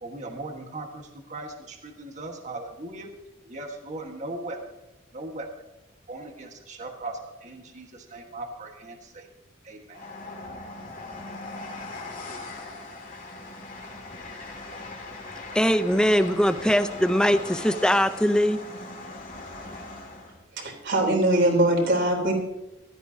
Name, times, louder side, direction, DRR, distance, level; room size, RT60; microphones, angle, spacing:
voice 1, 0.0-3.1 3.4-4.6 5.1-5.5 6.1-9.3 9.6-10.1, right 2 dB, 35° right, 1.5 m, -38 dB
Train, 9.9-20.4, left 2 dB, 40° left, 2.4 m, -39 dB
voice 2, 15.5-18.6, equal, 5° left, 0.6 m, -21 dB
voice 3, 20.5-22.3, right 1 dB, 60° right, 3.5 m, -22 dB
15.5 x 13.5 x 2.8 m
head